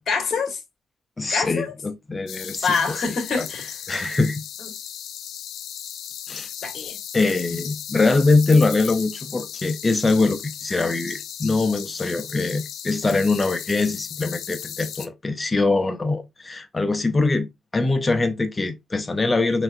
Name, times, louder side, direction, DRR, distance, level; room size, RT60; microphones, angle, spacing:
voice 1, 0.1-0.6 1.3-1.7 2.6-3.8 6.6-7.0, left 5 dB, 55° left, 2.0 m, -25 dB
voice 2, 1.2-3.0 3.3-3.5 3.9-4.4 6.3-6.5 7.1-19.6, left 3 dB, 25° left, 0.6 m, -23 dB
sound 1, 2.3-15.1, left 10 dB, 75° left, 0.5 m, -36 dB
5.9 x 2.6 x 2.5 m
cardioid pair, 90°, 0 cm